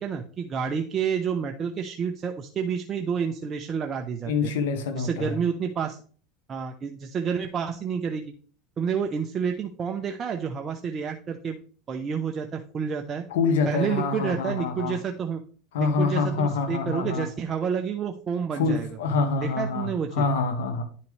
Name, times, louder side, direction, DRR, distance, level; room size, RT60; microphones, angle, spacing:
voice 1, 0.0-4.5 4.9-6.0 6.5-8.2 8.8-11.6 11.9-13.2 13.7-15.4 15.8-18.9 19.6-20.2, right 7 dB, 30° right, 4 dB, 0.8 m, -29 dB
voice 2, 4.2-5.4 13.3-15.0 15.7-17.3 18.5-20.8, left 4 dB, 85° left, 6 dB, 1.6 m, -26 dB
10.5 x 5.6 x 3.3 m, 0.43 s
supercardioid pair, 115°, 0 cm